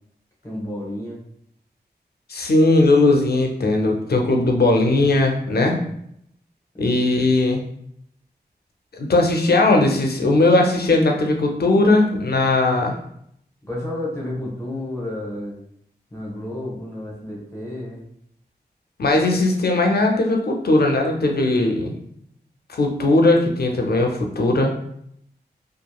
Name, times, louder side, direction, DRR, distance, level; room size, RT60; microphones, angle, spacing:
voice 1, 0.4-1.2 5.4-5.9 6.7-7.0 12.3-12.5 13.6-15.6 16.1-18.0, left 1 dB, 15° left, -4 dB, 0.9 m, -31 dB
voice 2, 2.3-5.8 6.8-7.6 8.9-13.0 19.0-22.0 22.7-24.7, left 2 dB, 65° left, 2 dB, 0.5 m, -18 dB
2.9 x 2.4 x 2.3 m, 0.71 s
wide cardioid pair, 55°, 17 cm